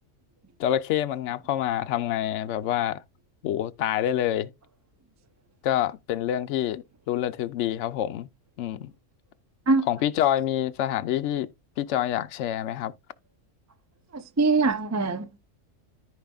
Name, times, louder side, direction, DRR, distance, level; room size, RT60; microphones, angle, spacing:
voice 1, 0.6-3.0 3.4-4.5 5.6-8.3 8.6-8.9 9.9-11.5 11.8-12.9, left 11 dB, 65° left, 0.9 m, -27 dB
voice 2, 14.1-15.4, right 3 dB, 30° right, 0.3 m, -23 dB
14.0 x 4.7 x 2.3 m
omnidirectional pair, 1.4 m